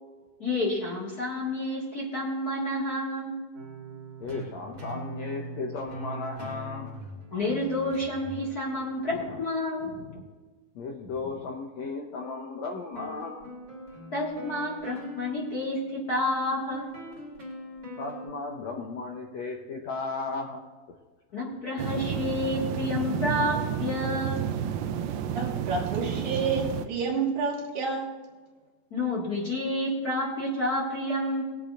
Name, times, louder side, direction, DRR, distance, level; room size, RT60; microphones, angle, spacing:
voice 1, 0.4-3.3 7.3-9.9 14.1-15.8 16.1-16.9 21.3-24.4 28.9-31.4, left 1 dB, 35° left, -4 dB, 1.9 m, -29 dB
sound 1, 3.5-10.8 12.9-18.3, right 1 dB, 25° right, 2.3 m, -42 dB
voice 2, 4.2-6.9 9.1-9.4 9.8-10.2 10.8-13.5 18.0-20.6, left 4 dB, 70° left, 0 dB, 1.7 m, -35 dB
sound 2, 21.8-26.9, right 8 dB, 90° right, 2.5 m, -31 dB
voice 3, 25.3-28.1, right 4 dB, 65° right, 0 dB, 2.7 m, -29 dB
20.0 x 8.5 x 2.6 m, 1.3 s
omnidirectional pair, 4.2 m